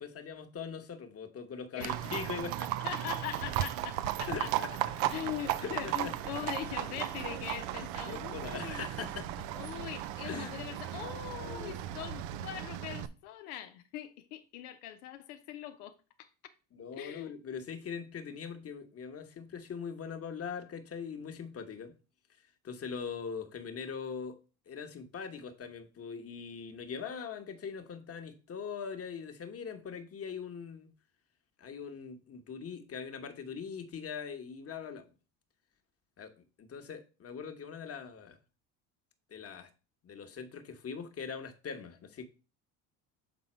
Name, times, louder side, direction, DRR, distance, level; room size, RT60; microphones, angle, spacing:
voice 1, 0.0-2.7 4.3-4.7 5.6-6.1 8.0-9.5 10.2-10.5 11.4-11.8 16.7-21.9 22.6-24.4 24.7-30.9 31.6-35.1 36.2-36.3 36.6-38.4 39.3-39.7 40.0-42.2, left 6 dB, 30° left, 1.2 m, -41 dB
voice 2, 1.7-2.3 2.8-8.8 9.5-16.3 16.9-17.3, left 12 dB, 85° left, 0.8 m, -42 dB
Livestock farm animals working animals, 1.8-13.1, right 13 dB, 70° right, 0.7 m, -36 dB
7.1 x 4.0 x 4.3 m
supercardioid pair, 85°, 44 cm